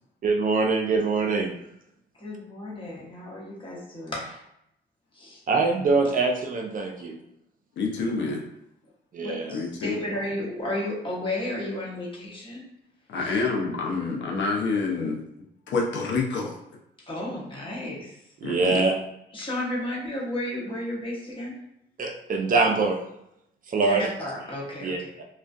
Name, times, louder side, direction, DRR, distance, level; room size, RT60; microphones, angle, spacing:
voice 1, 0.2-1.5 5.5-7.2 9.1-9.5 18.4-18.9 22.0-23.0 23.7-24.1 24.8-25.2, right 3 dB, 45° right, 2 dB, 0.4 m, -24 dB
voice 2, 2.2-4.4 5.2-5.4 9.2-12.6 13.2-13.4 17.1-18.2 19.3-21.6 23.8-25.1, left 1 dB, 25° left, -4 dB, 0.9 m, -33 dB
voice 3, 7.8-8.4 9.5-10.0 13.1-15.2 15.7-16.5 18.4-18.8, left 4 dB, 65° left, 0 dB, 0.5 m, -27 dB
2.3 x 2.1 x 2.5 m, 0.79 s
cardioid pair, 90°, 20 cm